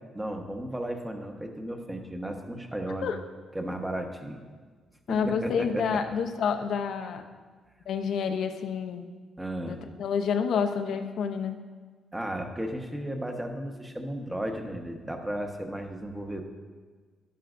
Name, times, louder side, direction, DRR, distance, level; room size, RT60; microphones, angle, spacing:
voice 1, 0.1-3.1 3.5-4.4 5.1-6.0 9.4-9.8 12.1-16.4, right 1 dB, 10° right, 3 dB, 1.2 m, -34 dB
voice 2, 5.1-7.2 7.9-9.1 9.6-11.6, left 6 dB, 70° left, 6 dB, 0.7 m, -29 dB
12.0 x 11.0 x 2.6 m, 1.5 s
cardioid pair, 90°, 0 cm